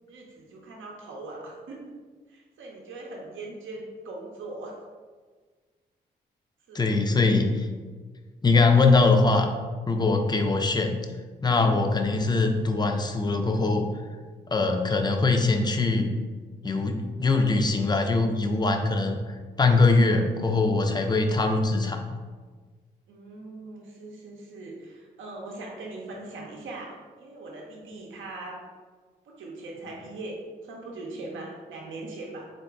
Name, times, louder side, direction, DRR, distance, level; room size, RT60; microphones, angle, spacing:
voice 1, 0.1-1.9 2.3-4.8 6.7-6.9 23.1-28.6 29.2-32.5, right 2 dB, 75° right, -1 dB, 0.7 m, -40 dB
voice 2, 6.7-7.7 8.4-9.5 9.9-11.0 11.4-13.8 14.5-16.1 16.6-22.0, left 3 dB, 20° left, 4 dB, 0.5 m, -22 dB
3.8 x 2.6 x 3.4 m, 1.5 s
supercardioid pair, 45°, 20 cm